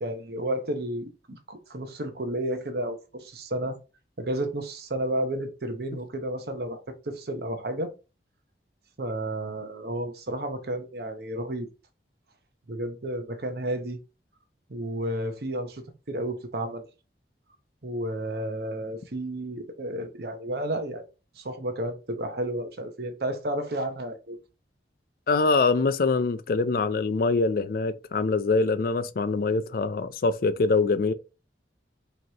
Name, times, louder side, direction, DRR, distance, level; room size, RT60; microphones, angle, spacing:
voice 1, 0.0-3.8 4.2-7.9 9.0-11.7 12.7-14.0 14.7-16.8 17.8-21.0 21.4-24.4, right 1 dB, 60° right, 0.8 m, -32 dB
voice 2, 25.3-31.1, left 3 dB, 55° left, 0.4 m, -24 dB
5.1 x 3.0 x 2.8 m
head